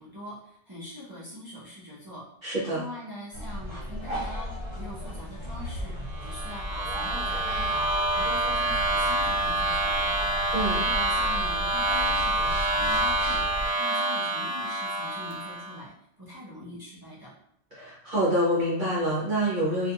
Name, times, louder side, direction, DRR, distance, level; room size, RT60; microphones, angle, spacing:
voice 1, 0.0-2.2 2.7-6.0 6.2-10.2 10.7-13.4 13.8-15.9 16.2-17.3, left 1 dB, 25° right, -9 dB, 0.6 m, -43 dB
voice 2, 2.4-2.8 10.5-10.8 17.7-19.9, right 1 dB, 50° right, -9 dB, 0.9 m, -26 dB
sound 1, 3.3-13.7, equal, 25° left, 1.1 m, -35 dB
jsyd materialize, 6.1-15.8, right 1 dB, 90° right, 0.9 m, -27 dB
2.4 x 2.3 x 2.8 m, 0.75 s
omnidirectional pair, 1.2 m